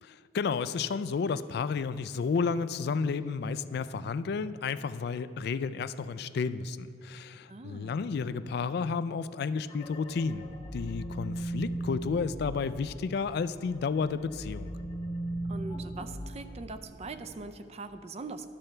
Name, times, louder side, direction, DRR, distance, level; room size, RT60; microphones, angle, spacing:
voice 1, 0.0-14.7, left 5 dB, 60° left, 14 dB, 0.3 m, -32 dB
voice 2, 7.5-8.4 15.5-18.5, right 3 dB, 35° right, 10 dB, 0.5 m, -42 dB
sound 1, 9.7-13.6 13.9-17.3, right 1 dB, 25° left, 0.6 m, -38 dB
11.5 x 4.4 x 6.6 m, 2.9 s
head